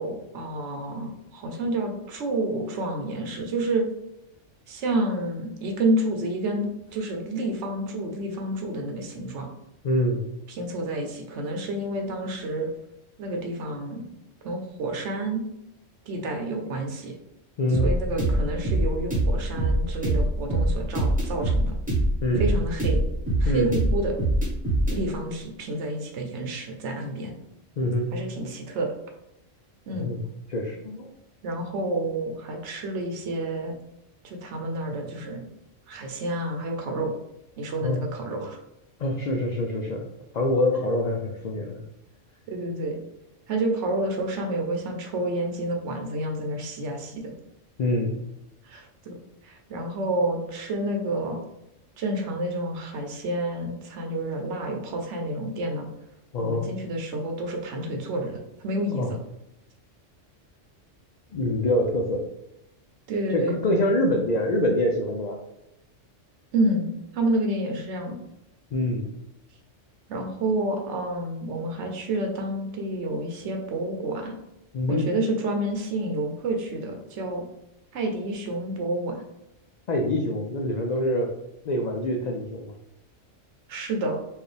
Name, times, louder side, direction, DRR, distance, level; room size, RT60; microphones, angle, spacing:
voice 1, 0.0-3.9 4.7-9.5 10.5-12.7 13.2-14.1 14.4-15.4 16.1-17.1 17.7-21.7 22.4-23.0 23.4-24.1 24.9-27.4 28.1-28.9 29.9-30.1 31.4-33.8 34.2-35.4 35.9-37.1 37.6-38.6 42.5-43.0 43.5-47.3 48.6-49.2 49.4-51.4 52.0-55.9 56.4-58.4 58.6-59.0 63.1-63.6 66.5-68.2 70.1-74.3 74.9-77.4 77.9-79.2 83.7-84.2, right 1 dB, 70° right, 3 dB, 1.0 m, -29 dB
voice 2, 9.8-10.2 17.6-17.9 22.2-22.5 23.4-23.7 27.8-28.1 29.9-30.2 30.5-31.1 37.8-38.0 39.0-40.1 40.3-41.8 47.8-48.2 56.3-56.7 58.9-59.1 61.3-62.2 63.3-65.4 68.7-69.1 74.7-75.1 79.9-81.3 81.6-82.7, left 1 dB, 80° left, 1 dB, 0.3 m, -25 dB
sound 1, 17.7-25.0, right 1 dB, 5° right, 0.9 m, -23 dB
4.6 x 2.4 x 3.3 m, 0.85 s
omnidirectional pair, 1.3 m